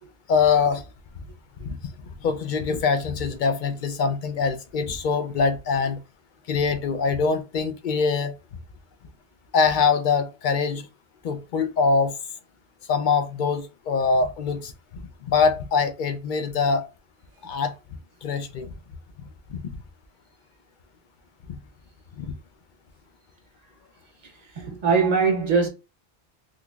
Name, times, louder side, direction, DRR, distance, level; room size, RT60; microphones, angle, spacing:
voice 1, 0.3-0.8 1.6-1.8 2.1-6.0 6.5-8.3 9.5-10.9 11.2-12.2 12.9-16.9 17.4-17.7 18.2-18.7 19.5-19.6 21.5-21.6 22.2-22.3, left 5 dB, 55° left, 0.6 m, -23 dB
voice 2, 24.6-25.7, right 5 dB, 40° right, 0.8 m, -21 dB
3.8 x 2.9 x 2.3 m
omnidirectional pair, 1.2 m